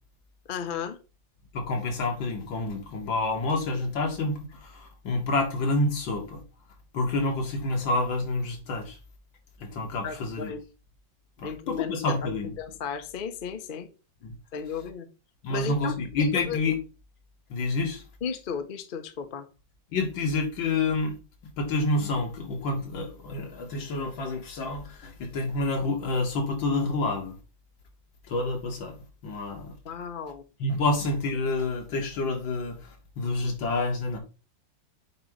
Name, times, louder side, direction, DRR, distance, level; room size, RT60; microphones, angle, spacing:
voice 1, 0.5-1.0 10.0-10.6 11.4-12.2 12.6-13.9 14.5-15.1 15.5-16.6 18.2-19.5 29.8-30.4, left 6 dB, 45° left, 0.6 m, -34 dB
voice 2, 1.5-6.4 6.9-9.0 9.6-10.5 11.4-12.5 14.2-14.3 15.4-16.8 17.5-18.0 19.9-21.2 21.6-27.4 28.3-29.0 29.2-29.7 30.6-32.8 33.2-34.2, left 2 dB, 80° left, 2.4 m, -28 dB
8.0 x 3.0 x 5.1 m
omnidirectional pair, 2.0 m